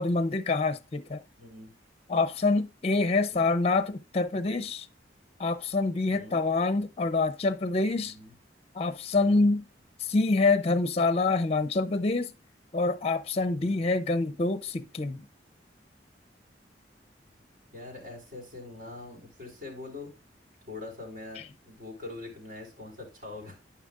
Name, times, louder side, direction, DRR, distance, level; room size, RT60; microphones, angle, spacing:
voice 1, 0.0-1.2 2.1-4.9 5.4-8.1 8.7-9.6 10.0-12.3 12.7-15.2, left 3 dB, 35° left, 0.5 m, -26 dB
voice 2, 1.4-1.7 3.3-3.4 6.1-6.4 8.1-8.3 9.1-9.4 13.6-13.9 17.7-20.1 20.7-23.5, left 2 dB, 55° right, 4.6 m, -43 dB
13.0 x 5.8 x 2.4 m
head